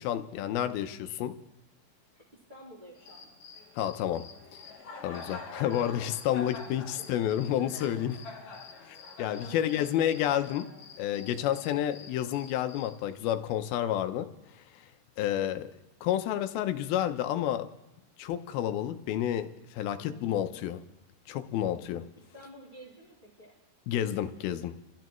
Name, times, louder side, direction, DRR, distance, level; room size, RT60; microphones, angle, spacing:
voice 1, 0.0-1.3 3.8-4.2 5.0-8.2 8.9-10.7 11.0-14.3 15.2-15.7 16.0-17.7 18.2-20.8 21.3-22.0 23.9-24.7, left 11 dB, 80° left, 9 dB, 2.5 m, -30 dB
voice 2, 2.5-3.3 6.9-7.2 9.3-9.9 22.2-23.6, equal, 10° right, -9 dB, 3.4 m, -49 dB
Cricket, 2.9-13.0, left 4 dB, 65° left, 3.6 m, -46 dB
29.5 x 14.0 x 3.1 m, 0.92 s
omnidirectional pair, 4.5 m